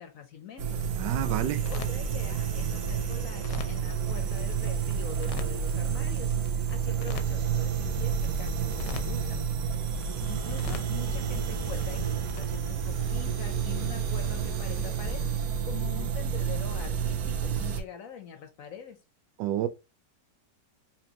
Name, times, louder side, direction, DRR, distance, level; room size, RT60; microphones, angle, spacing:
voice 1, 0.0-0.8 1.7-9.5 10.3-19.0, left 8 dB, 65° left, 0.9 m, -44 dB
sound 1, 0.6-17.8, right 7 dB, 65° right, 1.1 m, -30 dB
sound 2, 0.7-12.5, left 7 dB, 85° left, 1.2 m, -46 dB
voice 2, 0.9-1.7 19.4-19.7, right 12 dB, 90° right, 1.3 m, -29 dB
4.3 x 3.0 x 2.8 m
omnidirectional pair, 1.9 m